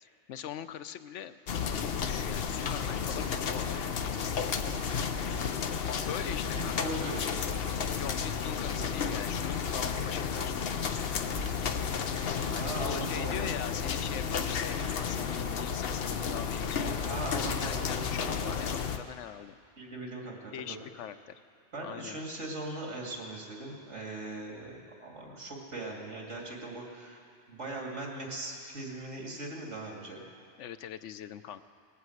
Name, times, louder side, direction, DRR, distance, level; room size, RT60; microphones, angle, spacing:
voice 1, 0.0-1.4 1.8-3.9 6.1-7.0 8.0-10.5 11.1-11.3 11.6-11.8 12.5-16.9 17.6-19.5 20.5-21.4 21.8-22.2 30.6-31.6, left 9 dB, 85° left, 12 dB, 0.9 m, -42 dB
sound 1, 1.5-19.0, left 6 dB, 60° left, 0.9 m, -32 dB
voice 2, 6.6-7.4 12.5-13.5 17.1-18.5 19.8-20.8 21.7-30.2, right 2 dB, 85° right, -1 dB, 2.7 m, -40 dB
19.5 x 8.2 x 7.8 m, 2.5 s
omnidirectional pair, 1.2 m